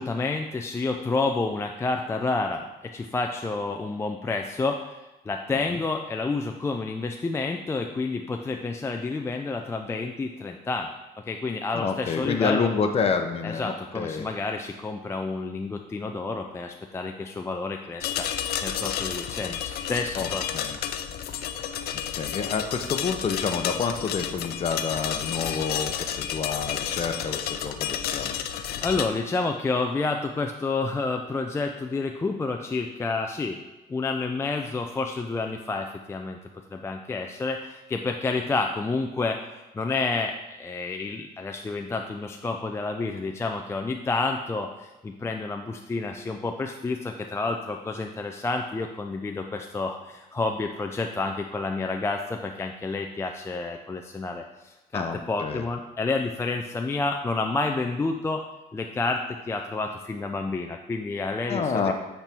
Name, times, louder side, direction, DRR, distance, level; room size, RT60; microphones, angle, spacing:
voice 1, 0.0-5.0 5.3-10.9 11.3-12.7 13.4-20.5 28.8-33.6 33.9-36.4 36.7-58.4 58.7-61.9, left 3 dB, 15° left, 3 dB, 0.4 m, -29 dB
voice 2, 11.7-14.3 20.2-20.8 22.2-28.4 54.9-55.7 61.5-61.9, left 5 dB, 35° left, 6 dB, 0.7 m, -28 dB
sound 1, 18.0-29.1, left 9 dB, 70° left, 0.6 m, -31 dB
8.4 x 4.4 x 3.5 m, 1.0 s
cardioid pair, 110°, 17 cm